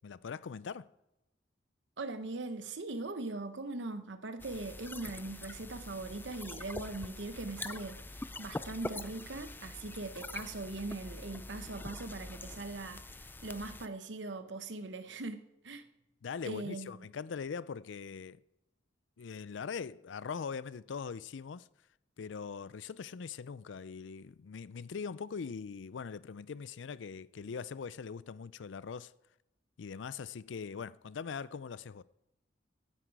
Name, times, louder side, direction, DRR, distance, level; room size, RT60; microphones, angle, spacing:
voice 1, 0.0-0.9 16.2-18.4 19.2-21.7 22.2-29.1 29.8-32.0, left 6 dB, 85° left, 0.4 m, -41 dB
voice 2, 2.0-15.9 16.4-17.1, right 2 dB, 75° right, 1.0 m, -41 dB
sound 1, 4.4-13.9, left 2 dB, 10° left, 0.4 m, -44 dB
16.0 x 9.8 x 4.7 m
head